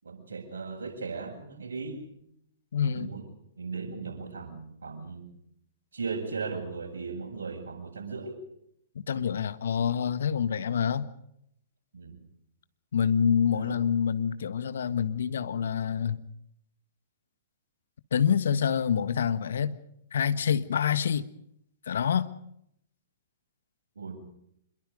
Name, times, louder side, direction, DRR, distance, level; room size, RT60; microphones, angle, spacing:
voice 1, 0.0-2.1 2.8-3.2 3.6-5.3 5.9-8.4 11.9-12.2 13.5-13.8 24.0-24.3, right 4 dB, 70° right, 3 dB, 8.0 m, -37 dB
voice 2, 2.7-3.1 9.1-11.1 12.9-16.2 18.1-19.7 20.1-21.3 21.9-22.3, left 7 dB, 65° left, 13 dB, 1.5 m, -26 dB
26.5 x 23.0 x 5.3 m, 0.75 s
figure-of-eight pair, 115°, 0 cm